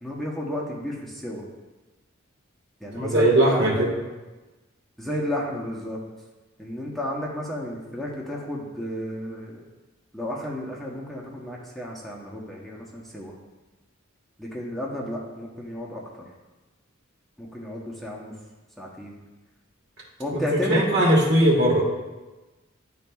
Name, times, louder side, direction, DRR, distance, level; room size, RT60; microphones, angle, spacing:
voice 1, 0.0-1.4 2.8-3.9 5.0-6.0 6.6-9.6 10.1-13.3 14.4-16.0 17.4-18.3 18.8-19.2 20.2-20.9, left 1 dB, ahead, -4 dB, 0.8 m, -32 dB
voice 2, 2.9-4.0 20.3-21.8, right 1 dB, 60° right, -2 dB, 1.4 m, -20 dB
11.0 x 4.1 x 2.3 m, 1.2 s
head